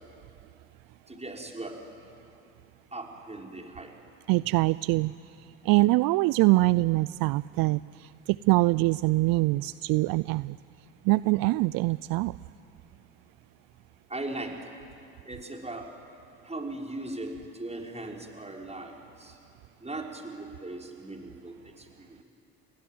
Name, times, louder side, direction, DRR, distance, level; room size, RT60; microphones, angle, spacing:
voice 1, 1.1-1.7 2.9-3.9 14.1-14.8 15.2-15.9 16.4-19.4 19.8-22.2, right 2 dB, 15° right, 0 dB, 5.9 m, -39 dB
voice 2, 4.3-5.1 5.6-10.6 11.0-12.4, right 21 dB, 60° right, 19 dB, 0.5 m, -24 dB
28.5 x 21.5 x 9.5 m, 2.8 s
hypercardioid pair, 55°, 39 cm